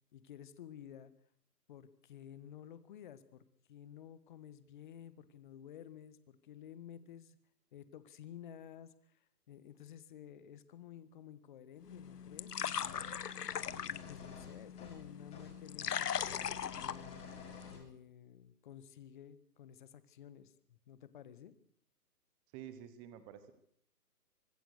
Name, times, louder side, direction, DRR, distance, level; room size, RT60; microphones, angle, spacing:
voice 1, 0.1-1.1 1.7-7.4 7.7-13.4 13.7-17.2 17.7-21.5, left 10 dB, 30° left, 14 dB, 1.4 m, -53 dB
sound 1, 11.8-17.8, left 8 dB, 70° left, 1.2 m, -40 dB
sound 2, 12.8-13.1 13.5-15.0 15.3-15.5 15.8-17.8, left 5 dB, 15° left, 5.9 m, -52 dB
voice 2, 22.5-23.5, right 10 dB, 10° right, 12 dB, 1.0 m, -49 dB
25.0 x 19.5 x 6.6 m, 0.67 s
hypercardioid pair, 155°, 49 cm